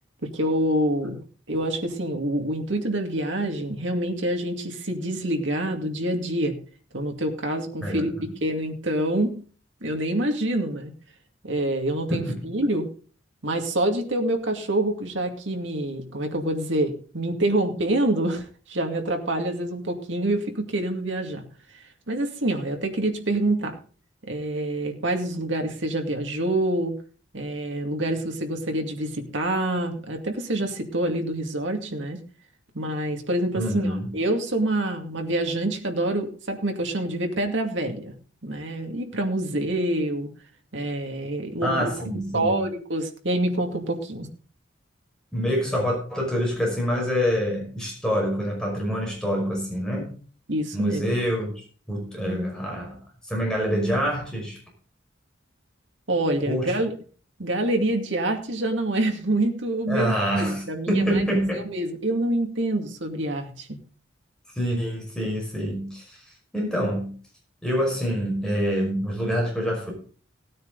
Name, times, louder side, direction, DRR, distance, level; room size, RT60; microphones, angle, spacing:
voice 1, 0.2-1.2 1.5-6.6 6.9-9.4 9.8-10.9 11.4-12.9 13.4-21.4 21.7-23.8 24.2-27.0 27.3-32.2 32.7-38.1 38.4-40.3 40.7-41.9 42.3-44.3 50.5-51.1 52.2-52.4 56.1-56.9 57.4-63.8, right 1 dB, 75° right, 3 dB, 2.3 m, -26 dB
voice 2, 7.8-8.3 12.1-12.4 33.6-34.1 41.6-42.6 45.3-50.2 50.7-53.0 53.2-54.6 56.5-56.7 59.9-61.7 64.5-66.2 66.5-67.1 67.6-69.9, equal, 5° left, -2 dB, 5.4 m, -26 dB
17.0 x 9.3 x 4.0 m, 0.40 s
head